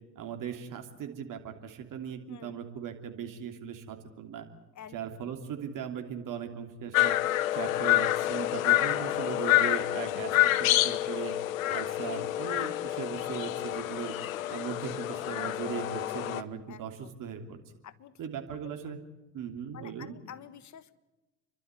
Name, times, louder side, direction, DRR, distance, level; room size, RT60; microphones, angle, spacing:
voice 1, 0.1-4.5 4.9-7.2 7.5-11.3 11.6-14.1 14.5-17.6 18.2-19.0 19.3-20.1, right 8 dB, 55° right, 5 dB, 3.0 m, -39 dB
voice 2, 4.7-5.3 9.0-9.2 9.9-10.0 14.5-14.6 16.7-17.1 17.8-18.2 18.5-18.7 19.7-21.0, left 9 dB, 45° left, 15 dB, 1.4 m, -49 dB
sound 1, 6.9-16.4, left 15 dB, 85° left, 0.7 m, -28 dB
30.0 x 12.0 x 9.6 m, 1.1 s
hypercardioid pair, 65°, 39 cm